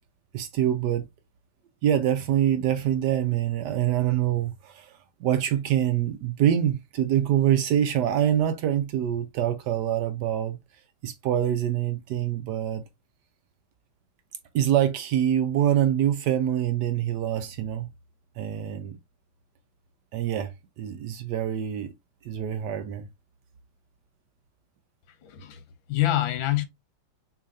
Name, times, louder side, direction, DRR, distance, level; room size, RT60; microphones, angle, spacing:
voice 1, 0.3-1.1 1.8-10.6 11.0-12.8 14.5-17.9 18.4-19.0 20.1-21.9 22.2-23.1, right 10 dB, 70° right, 1.1 m, -25 dB
voice 2, 25.2-25.6 25.9-26.6, left 14 dB, 75° left, 1.5 m, -25 dB
6.4 x 3.2 x 2.6 m
omnidirectional pair, 2.1 m